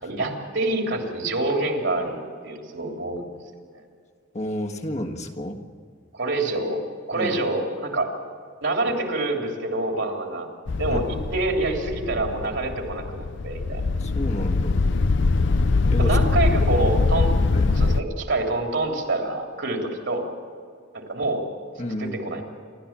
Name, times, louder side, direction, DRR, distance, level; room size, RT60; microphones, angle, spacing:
voice 1, 0.0-3.2 6.1-6.8 7.1-8.1 8.6-10.5 10.8-13.8 16.0-17.3 17.8-20.3 20.9-21.4 22.0-22.4, right 2 dB, 70° right, 2 dB, 3.3 m, -26 dB
voice 2, 4.3-5.7 7.1-7.3 10.9-11.0 14.0-14.9 15.9-16.2 17.5-17.7 21.8-22.4, left 1 dB, 35° left, 3 dB, 1.6 m, -31 dB
sound 1, 10.7-18.0, left 3 dB, 65° left, 0.6 m, -22 dB
28.0 x 13.0 x 7.4 m, 2.2 s
head